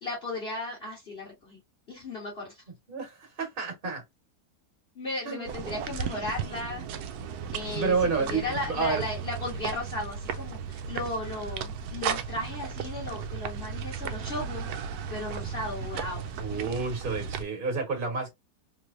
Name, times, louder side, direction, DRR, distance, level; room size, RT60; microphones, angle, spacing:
voice 1, 0.0-1.6 1.9-2.5 4.9-6.9 7.5-14.7 15.1-16.7, left 2 dB, 40° left, 1.5 m, -35 dB
voice 2, 2.9-4.0 5.2-5.5 7.7-9.0 16.4-18.3, right 4 dB, 35° right, 1.5 m, -30 dB
sound 1, 5.5-17.4, right 7 dB, 70° right, 1.0 m, -35 dB
3.5 x 3.2 x 2.5 m
omnidirectional pair, 1.8 m